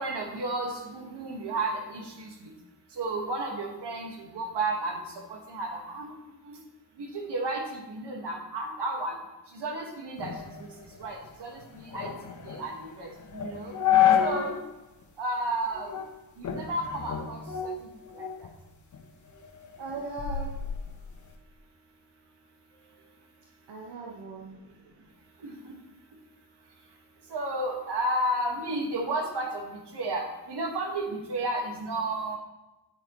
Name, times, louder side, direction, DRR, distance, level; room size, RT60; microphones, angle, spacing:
voice 1, 0.0-2.5 2.9-5.0 5.3-6.1 6.4-6.6 7.0-9.2 9.5-10.3 10.6-10.7 11.0-12.1 12.4-13.7 14.2-14.6 15.2-15.9 16.4-17.7 18.1-18.3 25.4-25.7 27.3-29.6 29.9-32.4, right 2 dB, 70° right, 1 dB, 1.9 m, -32 dB
sound 1, 10.2-14.6 15.0-15.1 15.7-16.1 16.4-18.5 18.9-21.4, left 9 dB, 45° left, 1.1 m, -29 dB
voice 2, 19.8-20.6 22.7-23.2 23.7-24.6, right 3 dB, 85° right, -2 dB, 1.3 m, -39 dB
9.6 x 8.6 x 3.2 m, 1.0 s
wide cardioid pair, 170°, 42 cm